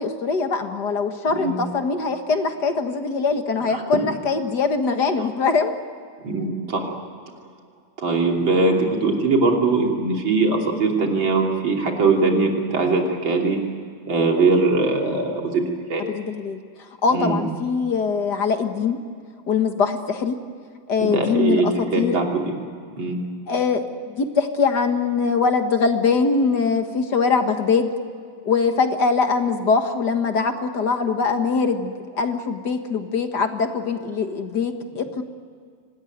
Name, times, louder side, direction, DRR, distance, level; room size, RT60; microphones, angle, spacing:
voice 1, 0.0-5.7 16.1-16.6 17.0-19.0 19.5-20.4 20.9-22.2 23.5-27.9 28.4-35.2, left 5 dB, 60° left, 6 dB, 2.1 m, -22 dB
voice 2, 1.3-1.6 3.7-4.0 5.2-5.3 6.2-6.9 8.0-13.6 14.1-15.6 15.9-16.0 17.1-17.5 21.0-22.4 23.0-23.2, right 3 dB, 80° right, 1 dB, 3.9 m, -21 dB
25.5 x 19.5 x 9.3 m, 2.1 s
omnidirectional pair, 2.1 m